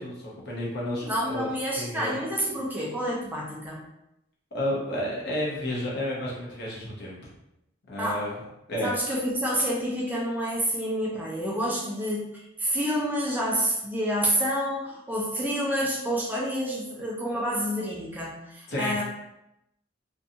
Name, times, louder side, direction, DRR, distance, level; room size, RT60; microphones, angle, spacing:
voice 1, 0.0-1.5 1.8-2.2 4.5-7.2 7.9-8.4 8.7-8.9 18.7-19.0, left 1 dB, 55° left, -5 dB, 0.8 m, -31 dB
voice 2, 1.0-3.9 8.0-8.3 8.8-19.0, equal, 10° right, -4 dB, 0.4 m, -28 dB
2.6 x 2.3 x 2.7 m, 0.85 s
head